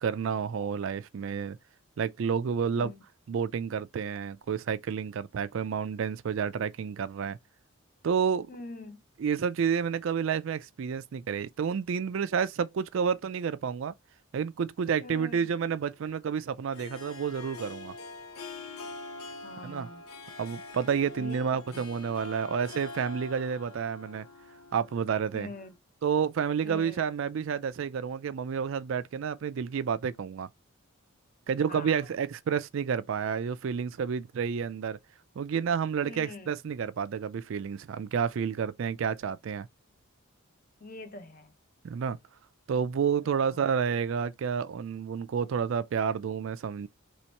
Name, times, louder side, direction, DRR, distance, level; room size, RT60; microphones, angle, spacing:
voice 1, 0.0-1.6 2.0-2.9 3.3-7.4 8.0-8.5 9.2-13.9 14.3-17.9 19.6-19.9 20.4-24.3 24.7-25.5 26.0-30.5 31.5-35.0 35.4-39.7 41.8-42.2 42.7-46.9, right 7 dB, 65° right, 0.3 m, -30 dB
voice 2, 8.5-9.0 15.0-15.5 19.4-20.0 21.2-21.8 25.3-25.7 26.6-27.1 31.7-32.2 36.1-36.5 40.8-41.5 43.2-43.7, left 2 dB, 40° left, 0.7 m, -44 dB
Harp, 15.3-25.8, left 3 dB, 85° left, 0.8 m, -44 dB
3.0 x 2.9 x 4.4 m
head